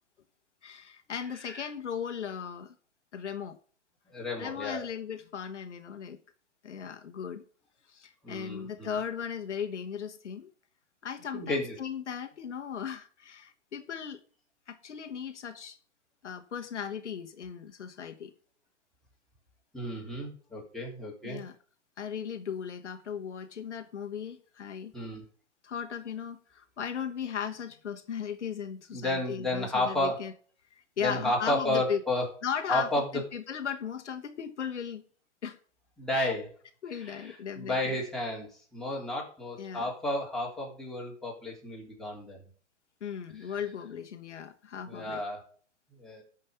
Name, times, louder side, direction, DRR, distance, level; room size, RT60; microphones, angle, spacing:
voice 1, 0.6-2.7 3.1-3.6 4.4-6.2 6.6-7.4 7.9-10.5 11.0-14.2 14.7-15.8 16.2-18.3 21.2-21.5 22.0-24.9 25.6-30.3 31.0-32.0 32.4-35.0 35.4-35.6 36.1-36.3 36.8-37.9 39.6-39.9 43.0-45.2, left 7 dB, 75° left, 1.3 m, -37 dB
voice 2, 4.1-4.9 8.2-8.9 11.3-11.8 19.7-21.4 24.9-25.2 28.9-30.2 31.0-32.2 32.7-33.1 36.0-36.5 37.0-42.4 44.9-45.5 46.0-46.2, left 1 dB, ahead, 3.4 m, -32 dB
12.5 x 5.4 x 6.6 m
hypercardioid pair, 125°, 36 cm